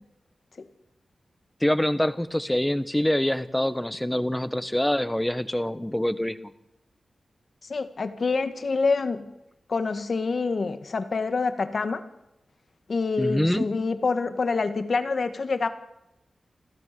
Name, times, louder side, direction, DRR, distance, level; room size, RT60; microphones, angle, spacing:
voice 1, 1.6-6.5 13.2-13.7, left 1 dB, 10° left, 12 dB, 1.3 m, -25 dB
voice 2, 7.7-9.3 9.7-12.0 12.9-15.7, left 4 dB, 55° left, 9 dB, 1.9 m, -26 dB
28.0 x 14.5 x 7.0 m, 0.90 s
wide cardioid pair, 100°, 0 cm